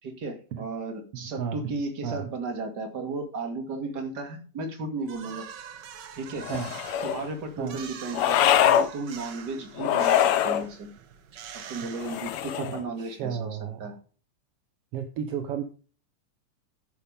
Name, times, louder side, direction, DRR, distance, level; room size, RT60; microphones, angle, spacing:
voice 1, 0.0-5.4 6.1-6.5 7.0-10.9 11.5-13.9, right 3 dB, 35° right, 6 dB, 2.4 m, -35 dB
voice 2, 1.1-1.7 2.0-2.2 6.5-6.7 7.6-7.8 12.6-14.0 14.9-15.6, right 8 dB, 65° right, 8 dB, 1.6 m, -33 dB
sound 1, 5.1-12.7, right 8 dB, 80° right, 0.9 m, -44 dB
sound 2, 6.4-7.2 8.1-8.9 9.8-10.6 12.0-12.8, left 10 dB, 80° left, 1.3 m, -23 dB
11.5 x 9.8 x 3.5 m, 0.38 s
omnidirectional pair, 3.7 m